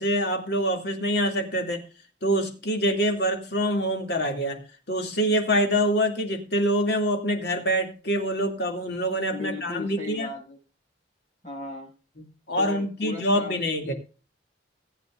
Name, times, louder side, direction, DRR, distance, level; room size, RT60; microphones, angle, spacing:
voice 1, 0.0-1.8 2.2-4.6 4.9-10.3 12.2-13.9, equal, 60° left, 3 dB, 2.7 m, -25 dB
voice 2, 9.3-10.6 11.4-11.9 12.6-13.9, left 3 dB, 40° left, 1 dB, 6.4 m, -37 dB
19.0 x 9.2 x 2.6 m, 0.34 s
head